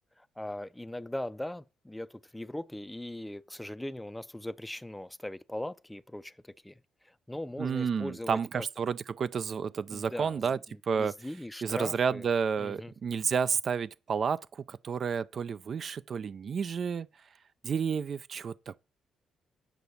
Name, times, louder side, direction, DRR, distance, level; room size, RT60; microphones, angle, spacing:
voice 1, 0.2-8.7 9.9-12.3 12.6-12.9, left 1 dB, 5° left, 0.5 m, -40 dB
voice 2, 7.6-11.1 11.6-17.1 17.6-18.8, right 6 dB, 50° right, 0.4 m, -31 dB
8.0 x 5.7 x 6.9 m
cardioid pair, 90°, 0 cm